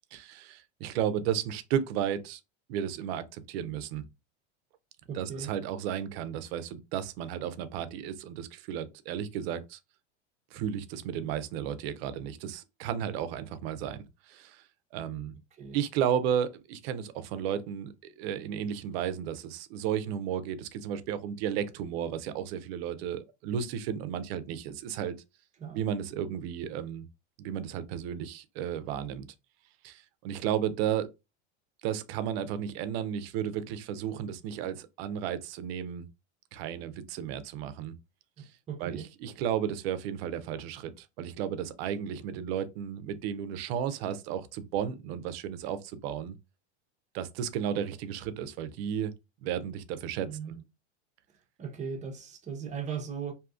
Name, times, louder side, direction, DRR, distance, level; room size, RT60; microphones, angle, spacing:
voice 1, 0.1-2.4 2.7-4.0 5.1-9.8 10.5-14.6 14.9-15.3 15.7-25.2 25.7-27.1 27.4-29.3 29.8-31.1 31.8-36.1 36.5-37.9 38.4-38.5 38.8-46.4 47.1-49.1 49.4-50.3, right 9 dB, 60° right, 0.5 m, -33 dB
voice 2, 5.1-5.5 15.6-15.8 25.6-25.8 38.4-39.1 50.2-50.6 51.6-53.3, right 6 dB, 20° right, 0.6 m, -38 dB
2.7 x 2.3 x 2.4 m
hypercardioid pair, 110°, 34 cm